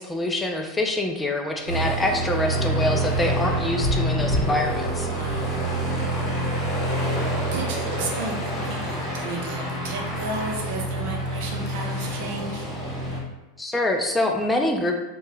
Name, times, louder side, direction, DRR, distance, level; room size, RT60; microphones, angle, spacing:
voice 1, 0.0-5.1 13.6-14.9, left 1 dB, 10° left, 2 dB, 0.3 m, -25 dB
Aircraft, 1.7-13.2, right 1 dB, 30° left, 1.4 m, -27 dB
voice 2, 2.1-2.7 5.0-5.7 7.5-12.7, right 3 dB, 65° right, 1 dB, 0.6 m, -33 dB
2.8 x 2.2 x 3.2 m, 1.1 s
supercardioid pair, 130°, 0 cm